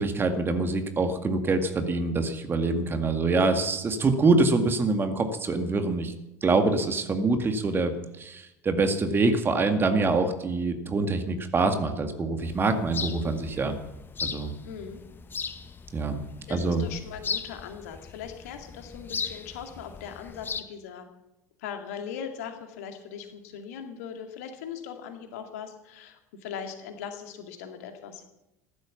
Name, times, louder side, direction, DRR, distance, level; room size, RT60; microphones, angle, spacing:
voice 1, 0.0-6.1 6.4-13.7 14.2-14.5 15.9-16.2 16.5-16.8, right 3 dB, 25° right, 7 dB, 2.0 m, -25 dB
sound 1, 12.4-20.6, left 5 dB, 25° left, 1.2 m, -38 dB
voice 2, 14.6-15.0 16.5-21.1 21.6-28.2, left 7 dB, 60° left, 6 dB, 2.2 m, -40 dB
15.0 x 11.5 x 7.2 m, 0.90 s
figure-of-eight pair, 70°, 9 cm